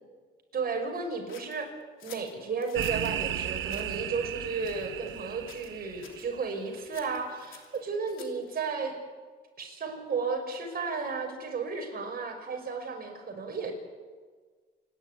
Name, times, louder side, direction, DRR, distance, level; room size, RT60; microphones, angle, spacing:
voice 1, 0.5-1.7 2.0-9.0 9.6-13.7, right 4 dB, 50° right, 3 dB, 5.8 m, -33 dB
sound 1, 1.3-3.2 3.7-4.0 4.6-5.2 5.5-5.8 6.0-6.3 6.9-8.5, left 9 dB, 85° left, 3.0 m, -50 dB
sound 2, 2.8-6.6, right 11 dB, 75° right, 1.2 m, -35 dB
28.5 x 11.5 x 9.6 m, 1.5 s
cardioid pair, 90°, 20 cm